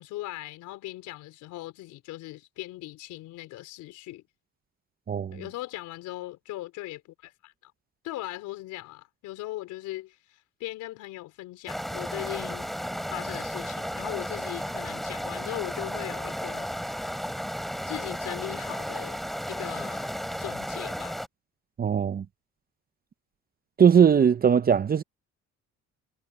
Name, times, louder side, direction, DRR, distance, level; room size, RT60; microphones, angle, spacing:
voice 1, 0.0-4.2 5.3-7.7 8.0-10.2 10.6-12.7 13.1-17.0 17.8-19.2 19.5-21.2, left 17 dB, 80° left, 4.1 m, -39 dB
voice 2, 5.1-5.4 21.8-22.2 23.8-25.0, right 7 dB, 30° right, 0.7 m, -20 dB
sound 1, 11.7-21.3, equal, ahead, 3.4 m, -34 dB
cardioid pair, 95°, 30 cm